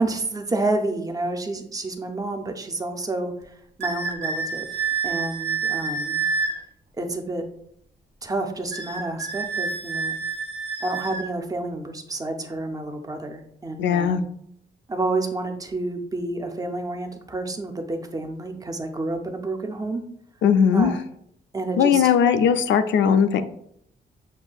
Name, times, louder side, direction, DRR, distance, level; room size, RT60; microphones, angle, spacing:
voice 1, 0.0-3.3 3.8-4.7 5.0-6.2 7.0-7.5 8.2-10.2 10.8-14.2 14.9-20.0 20.7-20.9 21.5-22.1, right 2 dB, 20° right, 5 dB, 0.4 m, -29 dB
sound 1, 3.8-6.6 8.7-11.3, right 5 dB, 70° right, 1.2 m, -28 dB
voice 2, 13.8-14.2 20.4-21.0 21.8-23.4, left 7 dB, 90° left, 9 dB, 0.4 m, -19 dB
7.3 x 2.6 x 2.3 m, 0.70 s
wide cardioid pair, 165°, 18 cm